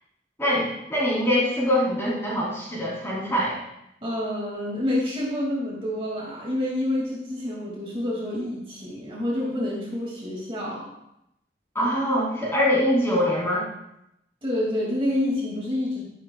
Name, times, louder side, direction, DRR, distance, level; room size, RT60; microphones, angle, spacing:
voice 1, 0.4-3.6 11.7-13.6, equal, 15° left, -6 dB, 3.2 m, -23 dB
voice 2, 4.0-10.9 14.4-16.0, left 1 dB, 30° right, -4 dB, 2.3 m, -28 dB
11.5 x 11.0 x 2.3 m, 0.82 s
head